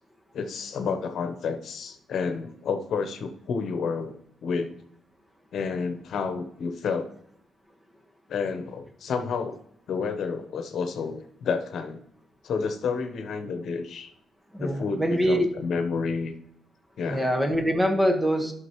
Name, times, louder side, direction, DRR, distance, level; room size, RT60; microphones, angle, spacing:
voice 1, 0.3-4.1 4.4-4.8 5.5-7.1 8.3-9.6 9.9-12.0 12.4-14.1 14.6-16.4 17.0-17.2, left 5 dB, 65° left, 7 dB, 1.0 m, -30 dB
voice 2, 14.5-15.5 17.1-18.5, equal, 15° right, 4 dB, 1.5 m, -24 dB
11.0 x 6.3 x 3.1 m, 0.69 s
cardioid pair, 70°, 0 cm